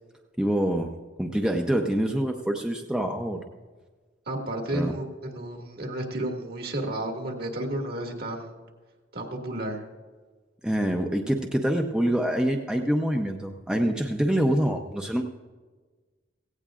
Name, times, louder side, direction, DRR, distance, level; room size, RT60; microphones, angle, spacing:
voice 1, 0.4-0.9 1.2-3.4 4.7-4.9 10.6-15.2, right 1 dB, 5° right, 2 dB, 0.6 m, -25 dB
voice 2, 4.3-8.5 9.1-9.8, right 1 dB, 55° right, 2 dB, 2.0 m, -32 dB
17.5 x 16.0 x 2.5 m, 1.4 s
head